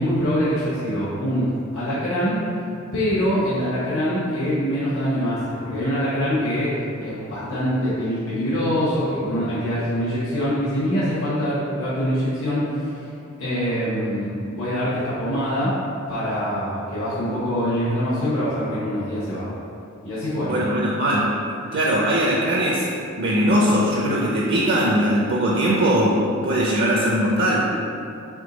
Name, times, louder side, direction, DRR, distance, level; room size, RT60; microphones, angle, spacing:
voice 1, 0.0-2.4 2.9-12.9 13.4-15.7 16.1-19.5 20.0-20.5, equal, 70° left, -10 dB, 1.0 m, -24 dB
voice 2, 20.5-21.3 21.7-22.9 23.2-27.7, equal, 55° right, -4 dB, 0.5 m, -20 dB
3.6 x 3.0 x 3.9 m, 2.6 s
head